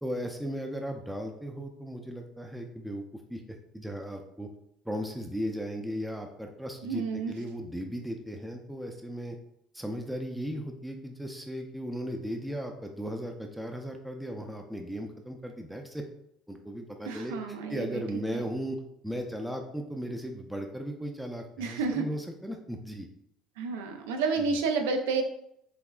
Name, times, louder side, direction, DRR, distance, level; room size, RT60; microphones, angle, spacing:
voice 1, 0.0-3.0 3.3-4.5 4.8-9.4 9.7-16.0 16.5-18.8 19.0-23.1 24.5-24.6, equal, 5° right, 3 dB, 0.4 m, -36 dB
voice 2, 6.8-7.3 17.1-18.0 18.3-18.4 21.6-22.1 23.6-25.2, right 4 dB, 90° right, 5 dB, 0.5 m, -30 dB
5.7 x 2.0 x 2.4 m, 0.76 s
supercardioid pair, 85°, 0 cm